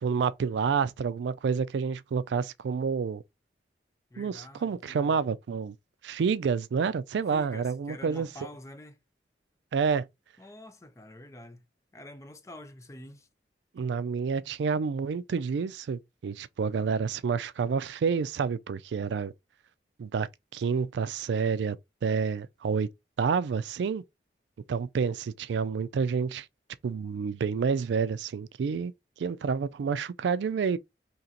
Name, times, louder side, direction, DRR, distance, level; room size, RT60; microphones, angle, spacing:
voice 1, 0.0-3.2 4.2-5.8 6.0-8.3 9.7-10.1 13.7-19.3 20.0-21.8 22.0-22.9 23.2-24.0 24.7-26.5 26.8-28.9 29.2-30.8, right 6 dB, 80° right, 0.3 m, -29 dB
voice 2, 4.1-5.2 7.3-9.0 10.4-11.6 11.9-13.3, left 1 dB, 15° left, 0.5 m, -46 dB
2.9 x 2.8 x 3.7 m
head